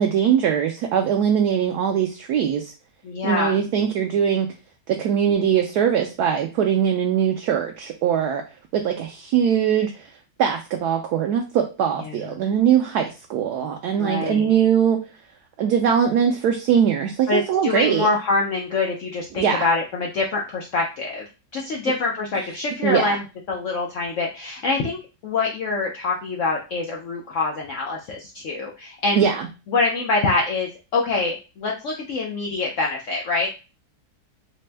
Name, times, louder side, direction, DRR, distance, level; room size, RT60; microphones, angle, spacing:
voice 1, 0.0-2.7 3.2-4.5 4.9-8.4 8.7-10.1 10.4-15.0 15.6-18.1 19.3-19.6 22.8-23.2 29.1-29.5, right 8 dB, 75° right, 3 dB, 0.9 m, -21 dB
voice 2, 3.0-3.5 12.1-12.2 14.0-14.4 17.3-21.2 21.5-23.2 23.5-25.0 25.2-29.3 29.7-33.5, left 3 dB, 90° left, -1 dB, 0.6 m, -25 dB
4.2 x 2.1 x 3.2 m, 0.31 s
omnidirectional pair, 2.0 m